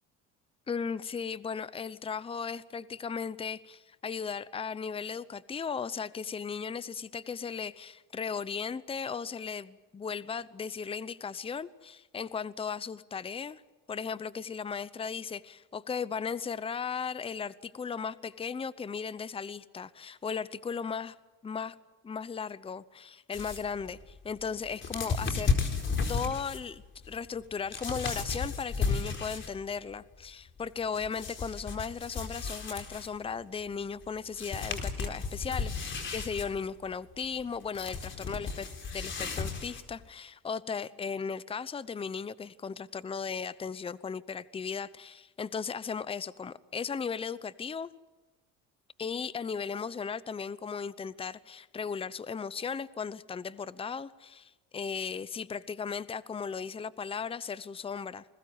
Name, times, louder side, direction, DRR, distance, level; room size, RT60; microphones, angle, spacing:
voice 1, 0.7-13.6 13.9-21.1 21.4-21.8 22.0-25.6 26.1-47.9 49.0-58.2, left 6 dB, 20° left, 17 dB, 0.8 m, -36 dB
sound 1, 23.3-29.7 30.0-33.3 34.0-34.1 34.3-40.1, left 4 dB, 40° left, 4.3 m, -34 dB
28.5 x 21.0 x 8.7 m, 1.2 s
cardioid pair, 120°, 31 cm